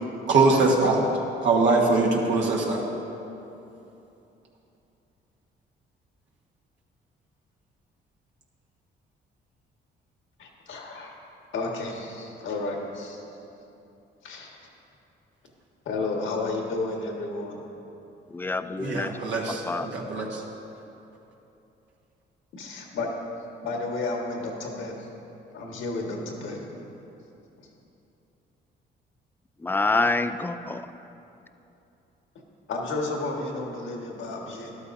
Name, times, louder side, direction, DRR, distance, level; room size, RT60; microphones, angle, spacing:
voice 1, 0.3-1.1 1.4-2.8 18.8-20.4, right 3 dB, 70° right, -2 dB, 1.4 m, -22 dB
voice 2, 10.4-11.1 11.5-13.2 14.2-14.6 15.8-17.6 22.5-23.1 23.6-25.1 25.5-26.7 32.7-34.7, left 3 dB, 80° left, 0 dB, 1.6 m, -32 dB
voice 3, 18.3-19.1 19.5-19.9 29.6-30.9, left 3 dB, 10° left, 11 dB, 0.4 m, -26 dB
13.0 x 11.5 x 2.7 m, 2.9 s
cardioid pair, 90°, 20 cm